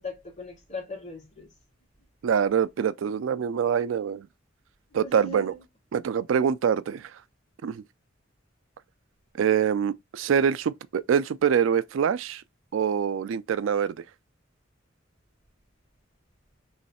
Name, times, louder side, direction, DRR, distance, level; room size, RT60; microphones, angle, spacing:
voice 1, 0.0-1.5 4.9-5.6, left 3 dB, 40° left, 1.8 m, -39 dB
voice 2, 2.2-4.3 4.9-5.5 5.9-7.1 7.6-7.8 9.4-12.4 12.7-13.9, right 7 dB, 85° right, 0.4 m, -25 dB
3.2 x 3.1 x 4.1 m
head